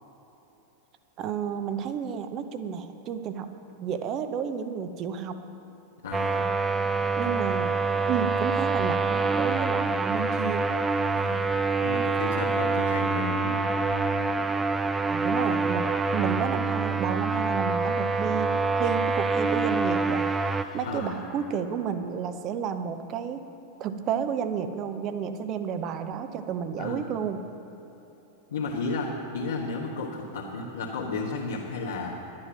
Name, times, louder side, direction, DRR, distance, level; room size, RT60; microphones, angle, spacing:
voice 1, 1.2-5.3 7.2-7.8 8.1-10.7 15.1-20.3 20.7-23.4 23.8-27.4, right 7 dB, 35° right, 9 dB, 0.8 m, -31 dB
voice 2, 6.0-6.5 7.5-7.6 11.1-11.4 11.8-13.6 20.8-21.2 26.8-27.1 28.5-32.2, left 3 dB, 65° left, -6 dB, 1.5 m, -33 dB
sound 1, 6.1-20.6, right 4 dB, 15° right, 0.4 m, -26 dB
sound 2, 6.7-14.4, left 2 dB, 85° left, 1.5 m, -48 dB
sound 3, 15.8-22.3, left 3 dB, 20° left, 1.1 m, -50 dB
11.5 x 10.5 x 6.1 m, 3.0 s
figure-of-eight pair, 90°, 0 cm